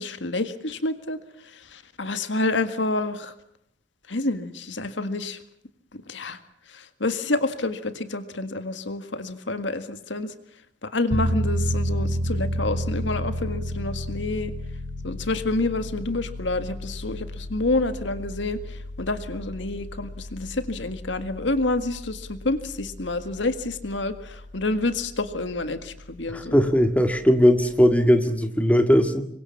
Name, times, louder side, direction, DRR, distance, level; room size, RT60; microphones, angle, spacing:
voice 1, 0.0-3.3 4.1-5.4 5.9-6.4 6.7-10.3 10.8-14.5 15.0-26.6, left 2 dB, 75° left, 10 dB, 1.8 m, -28 dB
Piano, 11.1-27.8, equal, 60° right, 6.8 m, -33 dB
voice 2, 26.3-29.2, equal, 5° left, 7 dB, 1.9 m, -19 dB
27.0 x 23.5 x 7.2 m, 0.74 s
head